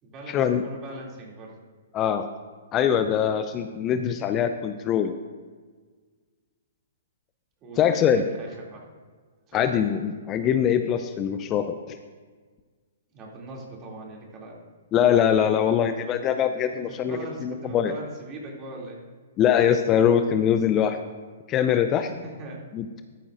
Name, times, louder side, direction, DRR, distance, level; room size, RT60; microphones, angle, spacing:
voice 1, 0.0-1.5 7.6-8.9 9.5-9.7 13.1-14.6 16.9-19.0 21.9-22.7, right 2 dB, 30° right, -2 dB, 2.8 m, -40 dB
voice 2, 1.9-2.3 2.7-5.1 7.8-8.2 9.5-12.0 14.9-17.9 19.4-21.0 21.5-22.1 22.7-23.0, left 9 dB, 25° left, 8 dB, 0.5 m, -23 dB
13.5 x 10.5 x 2.6 m, 1.5 s
figure-of-eight pair, 120°, 0 cm